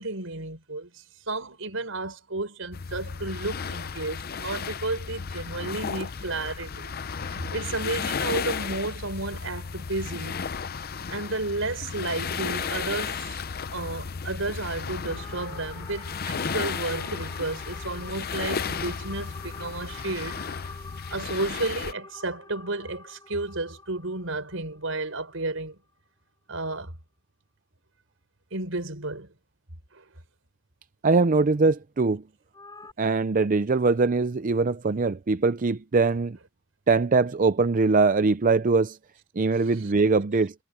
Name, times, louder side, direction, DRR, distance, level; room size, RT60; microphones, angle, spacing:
voice 1, 0.0-6.9 7.3-10.4 11.1-13.4 13.7-20.5 21.1-25.8 26.5-26.9 28.5-29.3 29.9-30.0 39.7-39.9, right 2 dB, 75° right, 5.9 m, -32 dB
sound 1, 2.7-21.9, left 6 dB, 50° left, 0.7 m, -34 dB
sound 2, 15.1-25.6 32.5-32.9, left 3 dB, 20° left, 7.2 m, -46 dB
voice 2, 31.0-32.2 33.0-36.4 36.9-39.0 39.4-40.5, right 3 dB, 40° right, 0.5 m, -22 dB
head